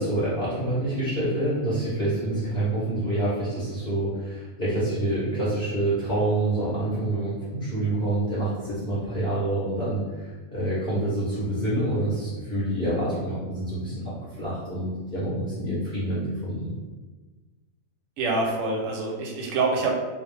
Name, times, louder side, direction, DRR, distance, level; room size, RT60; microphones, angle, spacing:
voice 1, 0.0-16.7, right 1 dB, 45° left, -9 dB, 0.6 m, -27 dB
voice 2, 18.2-19.9, right 3 dB, 70° right, 0 dB, 0.9 m, -26 dB
2.3 x 2.0 x 3.1 m, 1.3 s
omnidirectional pair, 1.4 m